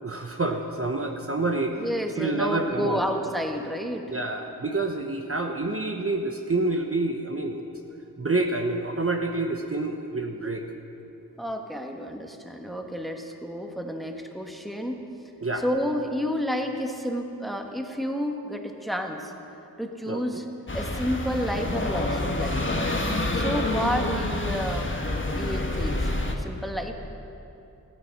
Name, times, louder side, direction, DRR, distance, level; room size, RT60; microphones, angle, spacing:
voice 1, 0.0-1.7 2.2-3.0 4.1-7.6 8.2-10.7 15.4-15.6 20.1-20.4, right 2 dB, 35° right, 3 dB, 1.1 m, -28 dB
voice 2, 1.7-4.1 11.4-15.0 15.5-19.3 19.8-20.4 20.7-22.7 23.3-25.0 25.3-26.9, equal, ahead, 3 dB, 1.6 m, -30 dB
sound 1, 20.7-26.3, left 2 dB, 30° left, 1.6 m, -27 dB
15.0 x 13.5 x 6.1 m, 2.8 s
cardioid pair, 40°, 37 cm